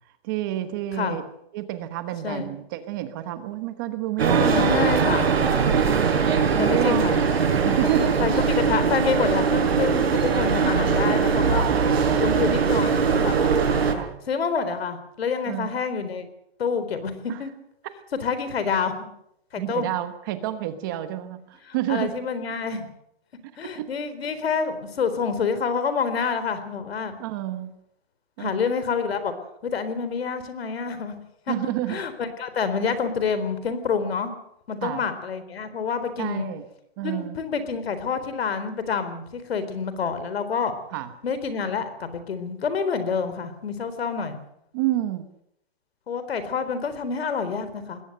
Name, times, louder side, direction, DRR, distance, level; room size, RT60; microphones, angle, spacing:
voice 1, 0.2-1.2 1.5-4.9 5.5-6.2 6.5-7.1 7.5-8.2 11.5-12.3 14.0-14.2 15.4-15.7 17.3-17.4 19.6-22.1 23.7-23.9 27.2-27.7 28.4-28.6 31.5-32.0 34.8-35.0 36.2-36.7 37.0-37.4 40.9-41.1 44.7-45.2, right 13 dB, 20° right, 10 dB, 1.1 m, -29 dB
sound 1, 4.2-13.9, right 6 dB, 80° right, 6.7 m, -21 dB
voice 2, 4.4-5.3 6.6-7.2 7.5-7.9 8.2-11.7 12.2-13.4 14.3-16.2 16.6-17.5 18.2-18.9 19.5-19.9 21.7-22.9 23.6-27.2 28.4-29.3 29.6-31.1 31.5-34.3 34.7-36.5 37.0-40.7 41.2-44.4 46.1-48.0, left 5 dB, 75° left, 11 dB, 4.1 m, -27 dB
20.5 x 17.0 x 8.0 m, 0.77 s
hypercardioid pair, 180°, 31 cm